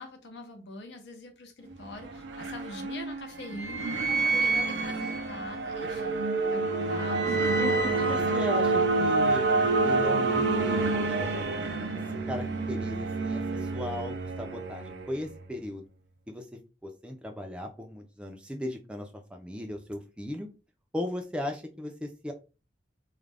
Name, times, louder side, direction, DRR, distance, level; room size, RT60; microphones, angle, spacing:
voice 1, 0.0-6.3 6.5-8.7, left 2 dB, 80° left, 0.7 m, -44 dB
sound 1, 1.7-15.5, right 3 dB, 85° right, 0.4 m, -28 dB
voice 2, 7.6-10.8 11.1-11.5 12.3-15.8 16.3-16.4 16.8-20.5 20.9-22.3, left 1 dB, 5° right, 0.4 m, -37 dB
2.4 x 2.0 x 3.3 m
head